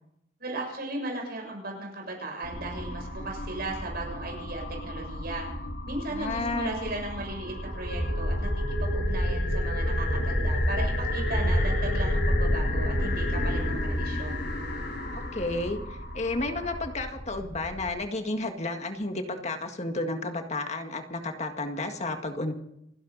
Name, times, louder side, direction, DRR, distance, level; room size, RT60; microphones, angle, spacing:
voice 1, 0.4-5.5 5.9-14.5, right 2 dB, 50° right, 0 dB, 7.0 m, -36 dB
sound 1, 2.4-17.9, left 1 dB, 55° left, 5.5 m, -29 dB
voice 2, 6.1-6.7 15.1-22.5, left 2 dB, 35° left, 5 dB, 1.8 m, -32 dB
29.0 x 11.0 x 4.1 m, 0.77 s
head